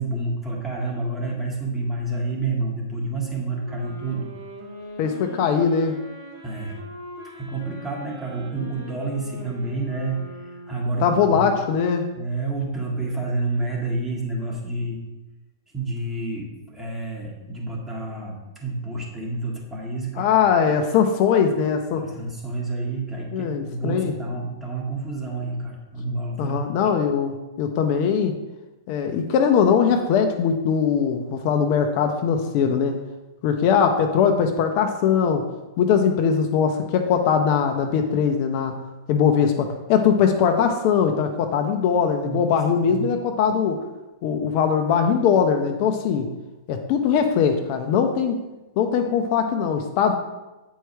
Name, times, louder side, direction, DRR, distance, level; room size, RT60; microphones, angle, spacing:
voice 1, 0.0-4.3 6.4-6.8 7.3-11.4 12.1-15.0 15.7-20.3 21.9-26.7 42.2-42.5 42.9-43.2, right 2 dB, 10° right, -2 dB, 1.5 m, -29 dB
sound 1, 3.6-11.3, equal, 65° right, 1.9 m, -41 dB
voice 2, 5.0-5.9 11.0-12.1 20.2-22.0 23.3-24.1 26.4-28.4 28.9-33.0 33.4-35.4 35.8-38.7 39.1-43.8 44.2-46.3 46.7-48.4 48.8-50.1, left 7 dB, 45° left, 4 dB, 0.6 m, -21 dB
8.0 x 4.6 x 3.2 m, 1.1 s
hypercardioid pair, 125°, 2 cm